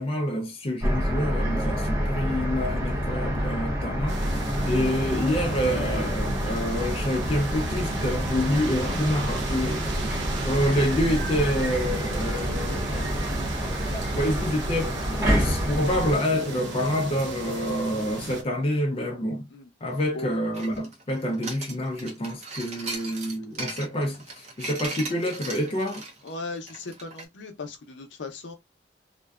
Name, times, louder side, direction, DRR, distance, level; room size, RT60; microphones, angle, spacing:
voice 1, 0.0-10.2 10.4-13.5 14.1-19.5 19.8-26.0, equal, 30° left, 0.4 m, -27 dB
sound 1, 0.8-16.1, equal, 15° right, 0.9 m, -28 dB
sound 2, 4.1-18.4, right 2 dB, 75° right, 0.6 m, -34 dB
sound 3, 20.5-27.2, right 3 dB, 35° right, 0.6 m, -38 dB
voice 2, 26.2-28.5, left 3 dB, 75° left, 0.6 m, -38 dB
2.4 x 2.2 x 2.3 m
head